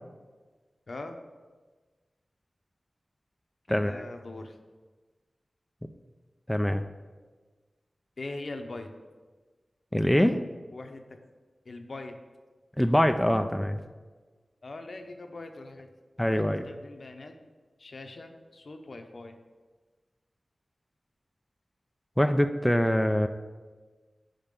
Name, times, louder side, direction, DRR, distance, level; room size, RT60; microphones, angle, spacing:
voice 1, 0.9-1.2 3.7-4.6 8.2-8.9 10.7-11.2 11.7-12.2 14.6-15.9 16.3-17.3 17.8-19.4, left 2 dB, 65° left, 5 dB, 0.8 m, -41 dB
voice 2, 3.7-4.0 6.5-6.8 9.9-10.4 12.8-13.8 16.2-16.7 22.2-23.3, equal, 10° left, 7 dB, 0.4 m, -24 dB
5.6 x 5.3 x 6.7 m, 1.3 s
wide cardioid pair, 55°, 0 cm